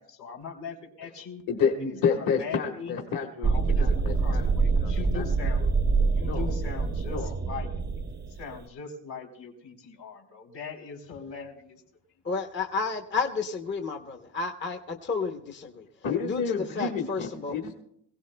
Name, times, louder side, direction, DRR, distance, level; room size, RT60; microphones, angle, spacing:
voice 1, 0.0-1.4 1.8-3.0 3.4-5.6 6.1-11.8, left 5 dB, 70° left, 1 dB, 3.3 m, -41 dB
voice 2, 1.5-4.5 5.1-5.3 6.2-6.5 7.1-7.3 16.0-17.7, left 6 dB, 50° left, 1 dB, 1.6 m, -29 dB
sound 1, 3.4-8.6, right 4 dB, 25° right, 0.6 m, -25 dB
voice 3, 12.2-15.9 16.2-17.6, left 4 dB, 25° left, 4 dB, 0.8 m, -31 dB
23.0 x 17.0 x 2.2 m, 0.72 s
cardioid pair, 110°, 44 cm